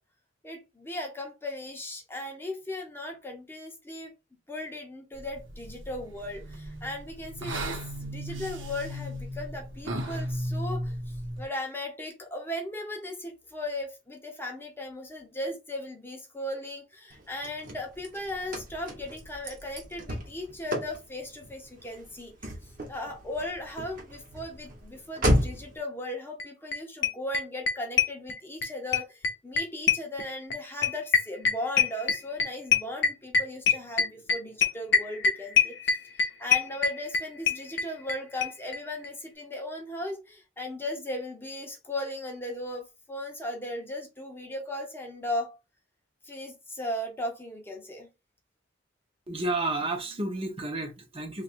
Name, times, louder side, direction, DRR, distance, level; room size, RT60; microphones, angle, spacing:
voice 1, 0.4-4.1 4.5-22.3 22.9-45.6 46.2-48.1, left 1 dB, 10° left, 0.7 m, -37 dB
sound 1, 5.2-11.5, equal, 90° right, 1.0 m, -36 dB
Car / Slam, 17.1-25.8, equal, 45° right, 1.1 m, -33 dB
sound 2, 26.4-26.5 26.7-26.8 27.0-28.7 28.9-38.2 38.4-38.5 38.7-38.8 39.0-39.1, left 6 dB, 65° left, 0.6 m, -24 dB
voice 2, 49.3-51.4, right 2 dB, 30° right, 0.8 m, -31 dB
2.9 x 2.4 x 4.2 m
head